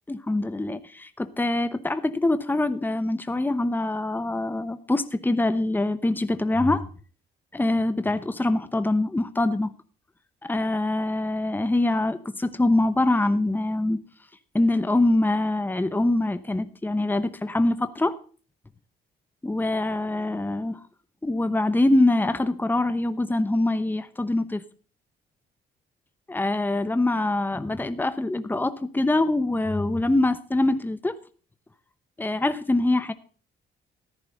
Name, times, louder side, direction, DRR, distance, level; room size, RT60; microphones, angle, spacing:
voice 1, 0.1-6.9 7.5-9.7 10.4-14.0 14.5-18.1 19.4-20.8 21.2-24.6 26.3-31.1 32.2-33.1, left 2 dB, 10° left, 11 dB, 0.9 m, -24 dB
14.0 x 10.5 x 3.9 m, 0.39 s
cardioid pair, 90°, 20 cm